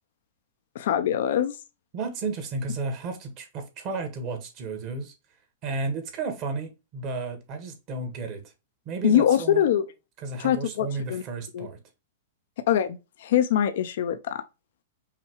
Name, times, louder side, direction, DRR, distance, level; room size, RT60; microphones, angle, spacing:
voice 1, 0.7-1.5 9.0-9.9 10.4-11.2 11.5-11.7 12.7-14.4, left 10 dB, 70° left, 0.6 m, -23 dB
voice 2, 1.9-5.1 5.6-8.4 8.8-9.6 10.2-11.8, right 3 dB, 40° right, 1.5 m, -33 dB
5.6 x 2.3 x 3.0 m
hypercardioid pair, 125°, 0 cm